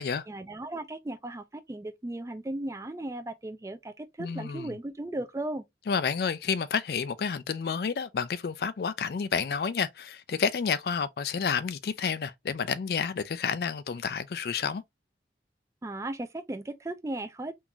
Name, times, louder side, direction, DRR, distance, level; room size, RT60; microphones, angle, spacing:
voice 1, 0.3-5.6 15.8-17.5, right 1 dB, 15° right, 0.4 m, -36 dB
voice 2, 4.2-4.8 5.9-14.8, left 6 dB, 60° left, 0.3 m, -30 dB
3.7 x 2.5 x 2.8 m
head